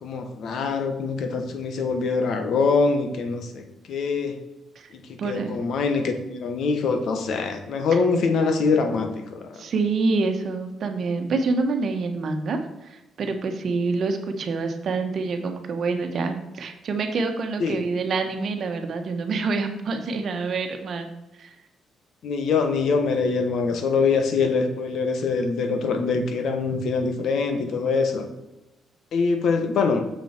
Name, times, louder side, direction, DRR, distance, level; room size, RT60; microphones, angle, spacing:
voice 1, 0.0-4.4 5.1-9.6 17.6-17.8 22.2-28.3 29.1-30.0, left 4 dB, 70° left, 6 dB, 1.2 m, -24 dB
voice 2, 5.2-5.5 9.5-21.1 21.4-21.5, right 4 dB, 55° right, 6 dB, 1.2 m, -27 dB
7.1 x 6.1 x 4.4 m, 1.0 s
cardioid pair, 120°, 0 cm